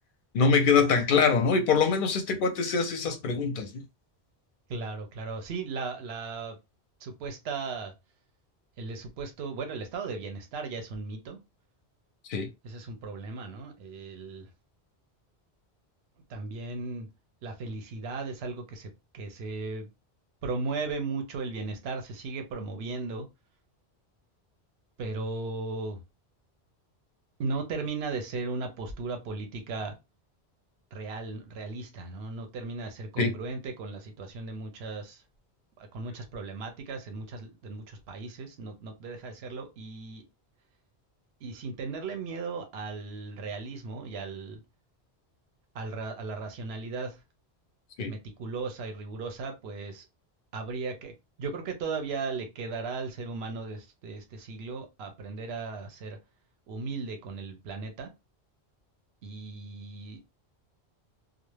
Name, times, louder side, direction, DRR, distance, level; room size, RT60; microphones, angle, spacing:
voice 1, 0.3-3.8 12.3-12.5 33.2-33.3 48.0-48.1, left 5 dB, 60° left, 0.6 m, -24 dB
voice 2, 4.7-6.6 7.0-7.9 8.8-11.4 12.6-14.5 16.3-17.1 17.4-19.9 20.4-23.3 25.0-26.0 27.4-29.9 30.9-35.2 35.8-40.2 41.4-44.6 45.7-47.2 48.1-50.1 50.5-51.1 51.4-56.2 56.7-58.1 59.2-60.2, right 4 dB, 75° right, 0.9 m, -36 dB
2.4 x 2.1 x 3.0 m
omnidirectional pair, 1.1 m